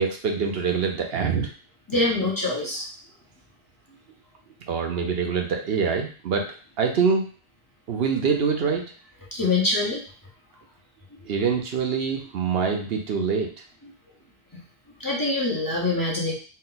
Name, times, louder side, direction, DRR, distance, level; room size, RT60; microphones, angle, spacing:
voice 1, 0.0-1.5 4.7-6.5 6.8-7.3 7.9-8.9 11.3-13.5, right 5 dB, 70° right, 3 dB, 0.9 m, -24 dB
voice 2, 1.9-2.9 9.3-10.0 15.0-16.3, left 2 dB, 20° left, -5 dB, 0.9 m, -24 dB
4.3 x 2.2 x 3.9 m, 0.39 s
omnidirectional pair, 1.1 m